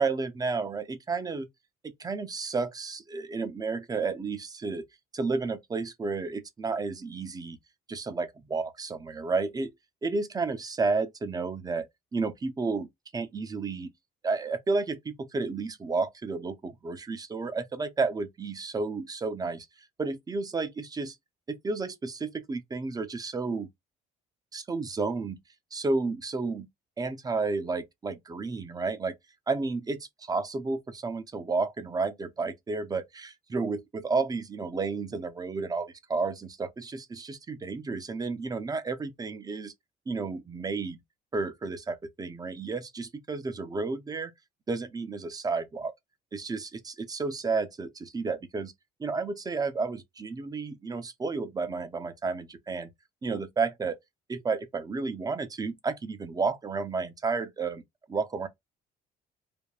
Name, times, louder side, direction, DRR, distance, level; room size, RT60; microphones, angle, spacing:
voice 1, 0.0-1.5 2.0-4.8 5.1-7.6 7.9-9.7 10.0-12.9 13.1-13.9 14.2-19.7 20.0-21.2 21.5-23.7 24.5-25.4 25.7-26.7 27.0-29.2 29.5-39.7 40.1-41.0 41.3-44.3 44.7-45.9 46.3-48.7 49.0-52.9 53.2-54.0 54.3-57.8 58.1-58.5, right 4 dB, 20° right, 0.6 m, -31 dB
3.4 x 2.1 x 2.3 m
cardioid pair, 110°, 17 cm